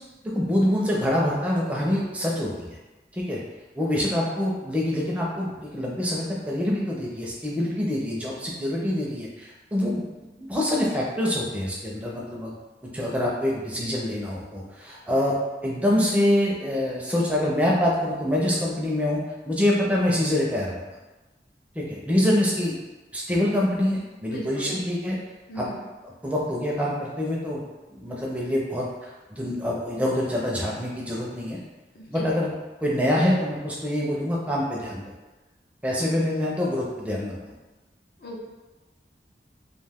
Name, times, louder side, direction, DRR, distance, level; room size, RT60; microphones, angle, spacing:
voice 1, 0.3-2.5 3.1-3.4 3.8-10.0 10.4-12.6 12.9-15.3 15.6-20.8 21.7-22.7 23.1-25.2 25.6-25.7 26.2-27.6 27.9-28.8 29.3-31.6 32.1-32.5 32.8-35.0 35.8-37.5, left 1 dB, 10° right, -4 dB, 0.4 m, -25 dB
voice 2, 24.3-24.8 25.5-25.9 31.9-32.3 38.2-38.5, right 1 dB, 55° left, -3 dB, 0.4 m, -37 dB
2.4 x 2.3 x 3.4 m, 1.1 s
head